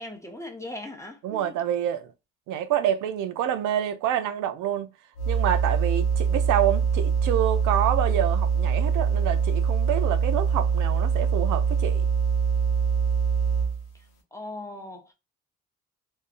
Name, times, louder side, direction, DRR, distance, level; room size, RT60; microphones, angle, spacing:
voice 1, 0.0-1.6 13.9-14.1 14.3-15.1, left 1 dB, 10° left, 0.7 m, -39 dB
voice 2, 1.2-2.1 2.5-4.9 5.3-12.1, right 10 dB, 85° right, 0.5 m, -27 dB
sound 1, 5.2-13.9, right 6 dB, 85° left, 0.8 m, -24 dB
2.6 x 2.1 x 2.4 m
cardioid pair, 90°, 30 cm